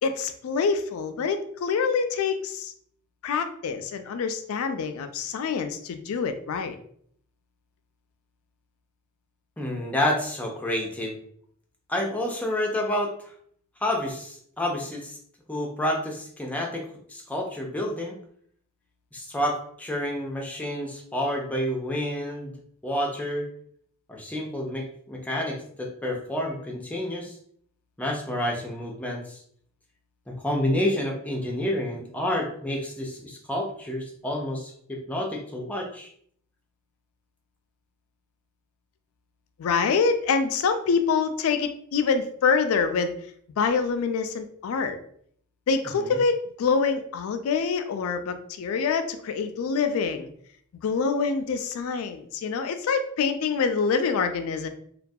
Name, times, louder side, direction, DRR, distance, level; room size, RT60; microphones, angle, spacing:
voice 1, 0.0-2.7 3.2-6.8 39.6-43.1 43.6-45.0 45.7-50.3 50.8-54.7, left 5 dB, 80° left, 8 dB, 0.3 m, -26 dB
voice 2, 9.6-11.2 11.9-13.1 13.8-15.2 15.5-18.1 19.1-22.5 22.8-23.5 24.1-27.3 28.0-29.4 30.3-36.1 46.0-46.2, left 1 dB, 5° left, -1 dB, 0.4 m, -29 dB
2.3 x 2.2 x 2.6 m, 0.63 s
head